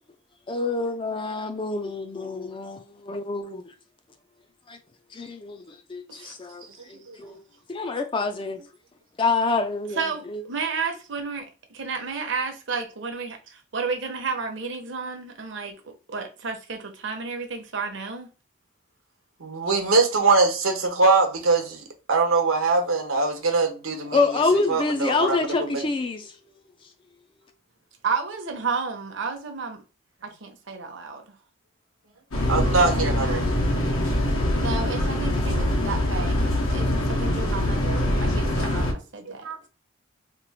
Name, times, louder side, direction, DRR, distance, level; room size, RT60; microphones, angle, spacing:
voice 1, 0.5-3.7 4.7-4.8 5.1-7.4 7.7-8.6 9.2-10.4 24.1-26.5, left 3 dB, 25° left, 0.3 m, -27 dB
voice 2, 6.8-7.2 19.4-24.2 24.7-25.8 32.5-33.5 39.4-39.7, right 3 dB, 90° right, 1.0 m, -22 dB
voice 3, 10.0-18.3 28.0-29.8 30.2-31.3 34.6-39.5, right 5 dB, 60° right, 0.7 m, -32 dB
sound 1, 32.3-38.9, left 1 dB, 90° left, 1.1 m, -24 dB
3.0 x 2.4 x 4.0 m
head